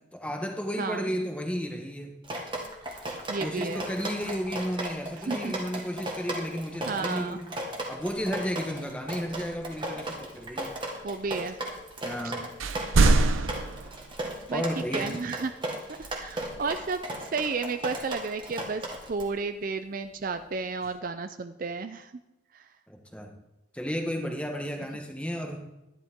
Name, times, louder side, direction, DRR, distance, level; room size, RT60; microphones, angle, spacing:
voice 1, 0.1-2.1 3.4-7.5 7.9-10.8 12.0-12.5 14.5-15.2 22.9-23.3 23.7-25.6, equal, 5° left, 3 dB, 1.2 m, -33 dB
Drip, 2.2-19.3, right 1 dB, 25° right, 1.6 m, -36 dB
voice 2, 3.3-3.9 5.3-5.5 6.9-7.4 11.0-11.6 12.2-12.3 14.5-15.5 16.0-22.1 22.5-22.6, right 4 dB, 45° right, 9 dB, 0.4 m, -32 dB
sound 1, 9.3-12.3 12.6-14.8 16.0-17.1 18.9-19.5 20.1-21.0, right 3 dB, 80° right, 0.7 m, -28 dB
12.0 x 11.0 x 3.6 m, 0.96 s
head